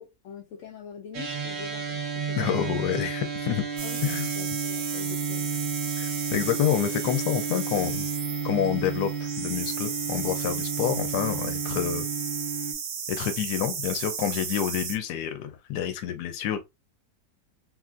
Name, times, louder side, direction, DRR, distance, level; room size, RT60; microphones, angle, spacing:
voice 1, 0.0-2.7 3.8-5.6, left 7 dB, 70° left, 0.8 m, -44 dB
sound 1, 1.1-12.7, right 5 dB, 85° right, 0.4 m, -32 dB
voice 2, 2.4-3.6 4.0-4.2 6.0-8.1 8.4-12.1 13.1-16.6, left 10 dB, 85° left, 1.2 m, -28 dB
sound 2, 3.8-15.0, right 6 dB, 65° right, 0.9 m, -34 dB
3.3 x 2.4 x 2.4 m
omnidirectional pair, 1.7 m